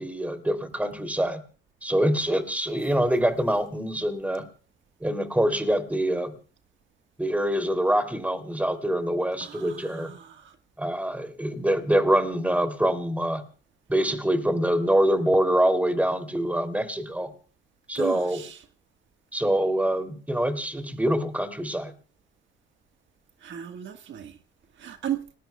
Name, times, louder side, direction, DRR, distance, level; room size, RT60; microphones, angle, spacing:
voice 1, 0.0-1.4 1.8-4.5 5.0-6.3 7.2-10.1 10.8-13.4 13.9-17.3 17.9-18.4 19.3-21.9, right 1 dB, 5° right, 3.0 m, -25 dB
voice 2, 9.4-10.5 17.9-18.6 23.4-24.4 24.8-25.2, right 10 dB, 70° right, 1.6 m, -35 dB
30.0 x 20.0 x 2.3 m
cardioid pair, 90°, 20 cm